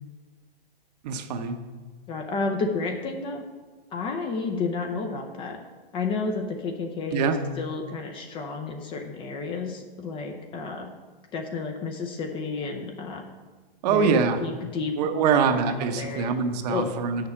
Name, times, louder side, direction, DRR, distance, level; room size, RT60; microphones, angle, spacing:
voice 1, 1.0-1.6 7.1-7.4 13.8-14.4 15.0-17.3, right 6 dB, 40° right, 8 dB, 0.8 m, -24 dB
voice 2, 2.1-3.4 3.9-5.6 5.9-10.9 11.3-13.3 13.9-16.3 16.7-16.9, left 4 dB, 15° left, 4 dB, 0.5 m, -31 dB
8.3 x 6.6 x 5.8 m, 1.3 s
hypercardioid pair, 140°, 31 cm